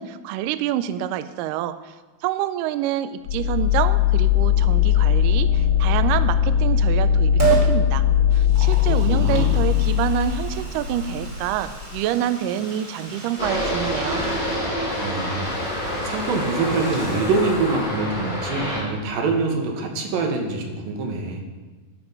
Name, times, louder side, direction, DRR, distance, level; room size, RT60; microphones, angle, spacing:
voice 1, 0.0-2.0 2.2-8.1 8.3-14.2, right 11 dB, 90° right, 12 dB, 1.9 m, -27 dB
sound 1, 3.3-12.0, left 9 dB, 90° left, 4.0 m, -20 dB
Liquid, 7.4-7.7 8.3-18.0 18.3-18.4, right 6 dB, 35° right, 0.7 m, -32 dB
voice 2, 8.9-9.6 15.0-15.5 16.0-21.4, right 3 dB, 75° right, 2 dB, 2.8 m, -25 dB
sound 2, 13.4-18.8, equal, 15° left, 3.1 m, -27 dB
12.0 x 6.0 x 5.5 m, 1.3 s
omnidirectional pair, 4.3 m